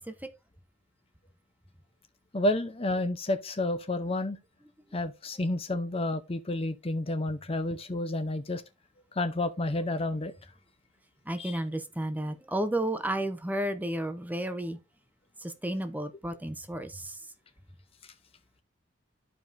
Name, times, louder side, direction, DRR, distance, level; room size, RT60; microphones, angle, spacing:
voice 1, 2.3-4.4 4.9-8.6 9.2-10.3 11.4-11.6, left 1 dB, 30° left, 0.7 m, -30 dB
voice 2, 11.3-14.8 15.4-17.1, right 1 dB, 10° right, 0.9 m, -32 dB
13.5 x 4.9 x 2.6 m
head